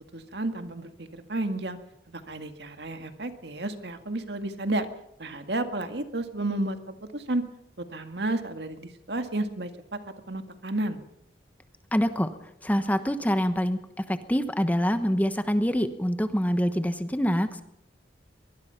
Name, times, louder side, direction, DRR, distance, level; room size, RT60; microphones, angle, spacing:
voice 1, 0.1-1.8 2.1-4.9 5.2-7.4 7.8-10.0 10.3-11.0, right 2 dB, 65° right, 7 dB, 2.0 m, -32 dB
voice 2, 11.9-12.3 12.6-13.8 14.1-17.6, equal, 10° left, 10 dB, 1.1 m, -25 dB
23.0 x 20.5 x 5.9 m, 0.79 s
head